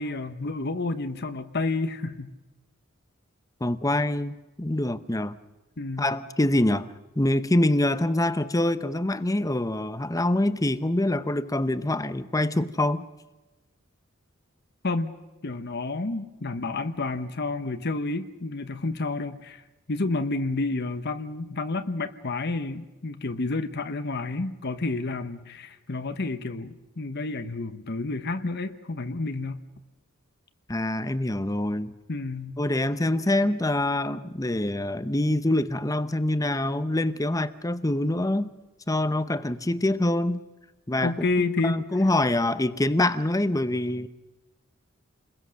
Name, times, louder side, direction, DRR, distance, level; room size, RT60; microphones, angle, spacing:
voice 1, 0.0-2.3 5.8-6.1 14.8-15.1 15.4-19.6 19.9-29.6 32.1-32.6 41.0-41.8, left 3 dB, 50° left, 9 dB, 1.0 m, -30 dB
voice 2, 3.6-5.4 6.0-6.9 7.2-13.1 30.7-31.9 32.6-38.5 38.9-40.4 40.9-44.1, left 1 dB, 15° left, 13 dB, 0.8 m, -25 dB
28.5 x 21.5 x 6.4 m, 1.1 s
head